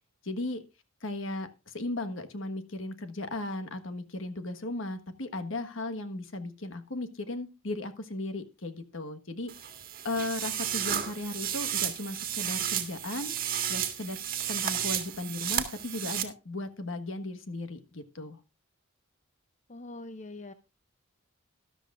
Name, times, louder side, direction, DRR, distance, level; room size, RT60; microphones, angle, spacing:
voice 1, 0.2-0.6 1.0-9.7 10.0-14.2 14.5-18.4, left 2 dB, 65° left, 9 dB, 1.4 m, -36 dB
sound 1, 9.5-16.2, right 10 dB, 45° right, 1.7 m, -32 dB
voice 2, 19.7-20.5, left 2 dB, 35° left, 11 dB, 0.6 m, -43 dB
13.5 x 12.0 x 2.5 m, 0.27 s
head